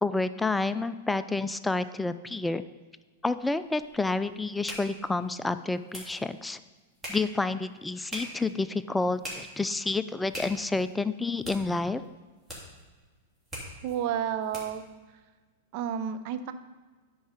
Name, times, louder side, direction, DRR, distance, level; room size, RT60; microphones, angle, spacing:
voice 1, 0.0-2.6 3.2-6.6 7.1-12.0, left 3 dB, 5° left, 13 dB, 0.3 m, -29 dB
sound 1, 3.3-14.9, equal, 10° right, 3.0 m, -45 dB
voice 2, 13.8-14.8 15.7-16.5, right 9 dB, 50° right, 10 dB, 0.6 m, -31 dB
10.0 x 4.7 x 5.1 m, 1.3 s
figure-of-eight pair, 100°, 0 cm